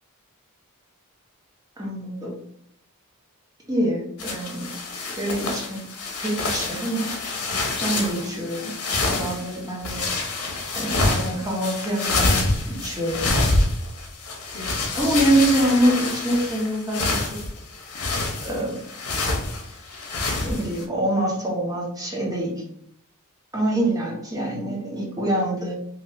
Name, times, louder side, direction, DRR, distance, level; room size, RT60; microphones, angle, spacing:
voice 1, 1.8-2.4 3.7-4.7 5.0-5.8 6.2-7.1 7.8-8.7 9.0-10.0 10.7-12.4 12.6-13.5 14.9-17.4 18.4-18.8 20.4-22.6 23.5-25.7, right 1 dB, 15° right, -3 dB, 0.9 m, -25 dB
sound 1, 4.2-20.8, left 2 dB, 75° left, 0.7 m, -27 dB
2.9 x 2.5 x 2.9 m, 0.69 s
head